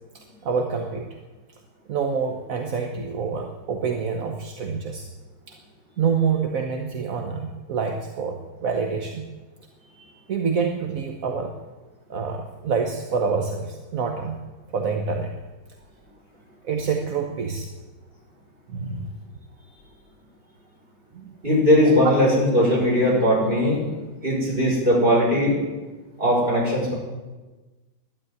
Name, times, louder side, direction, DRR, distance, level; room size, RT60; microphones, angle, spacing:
voice 1, 0.1-1.1 1.9-5.1 6.0-9.3 10.3-11.5 12.1-14.4 14.7-15.3 16.6-17.7 18.7-19.1 21.1-21.3 21.8-21.9, right 5 dB, 50° right, 3 dB, 1.2 m, -27 dB
voice 2, 21.4-23.8 24.2-25.6 26.2-26.9, equal, 25° right, -3 dB, 5.8 m, -19 dB
12.0 x 10.5 x 9.6 m, 1.2 s
omnidirectional pair, 2.3 m